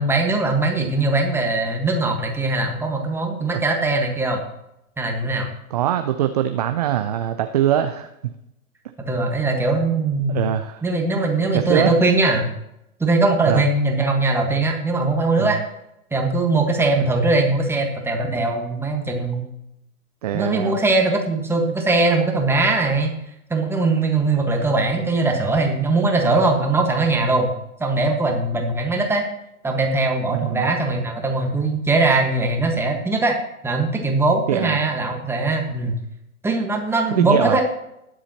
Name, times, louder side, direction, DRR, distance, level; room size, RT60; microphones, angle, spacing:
voice 1, 0.0-4.4 5.0-5.5 9.1-10.4 10.8-12.5 13.0-15.6 16.1-19.5 20.3-23.1 23.5-27.5 27.8-29.2 29.6-33.4 33.6-35.9 36.4-37.6, right 2 dB, 5° right, 2 dB, 1.5 m, -20 dB
voice 2, 5.7-8.3 10.3-10.8 11.5-11.9 13.5-13.6 15.4-15.6 20.2-20.8 30.3-30.7 34.5-34.8 37.2-37.6, right 10 dB, 30° right, 8 dB, 0.4 m, -22 dB
20.5 x 7.4 x 2.9 m, 0.84 s
hypercardioid pair, 120°, 45 cm